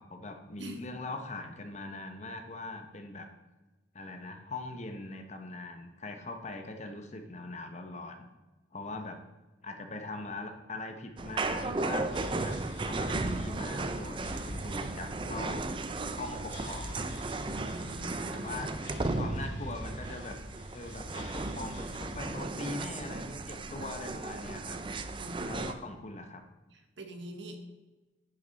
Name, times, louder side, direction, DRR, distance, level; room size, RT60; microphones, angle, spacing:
voice 1, 0.0-3.3 3.9-8.3 8.7-9.2 9.6-12.1 12.4-12.6 12.8-15.7 16.1-17.0 18.3-18.7 19.1-20.4 20.7-24.8 25.5-26.4, left 2 dB, 40° left, 5 dB, 0.9 m, -41 dB
sound 1, 11.2-25.7, right 3 dB, 25° right, 0.4 m, -35 dB
sound 2, 12.1-22.3, left 1 dB, 70° left, 2.3 m, -45 dB
voice 2, 17.5-18.5 25.2-25.8 26.7-27.6, right 1 dB, 75° right, 5 dB, 1.2 m, -45 dB
10.0 x 6.7 x 4.0 m, 1.1 s
head